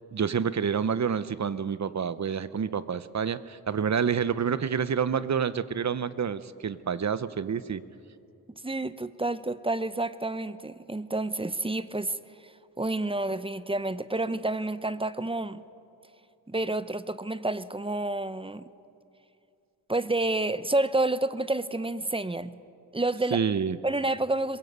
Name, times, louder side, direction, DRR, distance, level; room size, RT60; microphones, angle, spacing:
voice 1, 0.1-7.8 23.3-23.8, right 7 dB, 45° right, 0.8 m, -28 dB
voice 2, 8.6-12.2 12.8-15.6 16.5-18.6 19.9-22.6 22.9-23.4 23.8-24.6, right 2 dB, 15° right, 0.7 m, -29 dB
22.5 x 21.5 x 8.1 m
cardioid pair, 90°, 39 cm